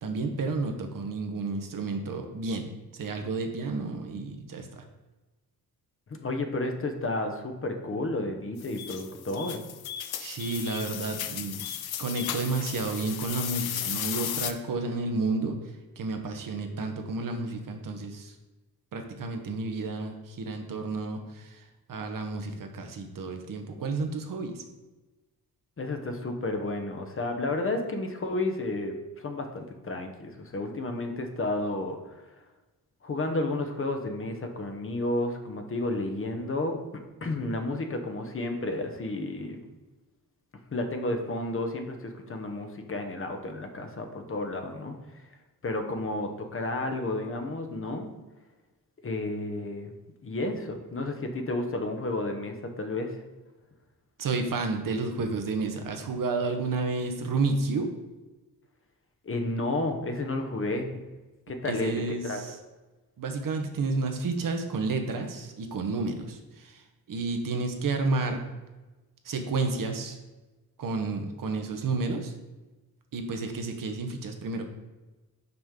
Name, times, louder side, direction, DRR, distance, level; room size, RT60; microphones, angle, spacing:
voice 1, 0.0-2.7 3.0-4.8 10.2-11.6 12.0-15.6 16.0-18.3 18.9-21.5 21.9-24.6 54.2-57.9 61.6-62.5 63.2-66.8 67.1-68.4 69.2-70.2 70.8-72.3 73.1-74.6, right 3 dB, 60° right, 5 dB, 1.0 m, -31 dB
voice 2, 6.1-9.6 25.8-32.3 33.0-39.6 40.7-45.0 45.6-48.1 49.0-49.9 50.2-53.2 59.2-60.9 61.5-62.4, left 2 dB, 35° left, 5 dB, 0.9 m, -32 dB
sound 1, 8.6-14.5, left 10 dB, 75° left, 0.6 m, -35 dB
5.9 x 5.2 x 3.7 m, 1.2 s
cardioid pair, 85°, 38 cm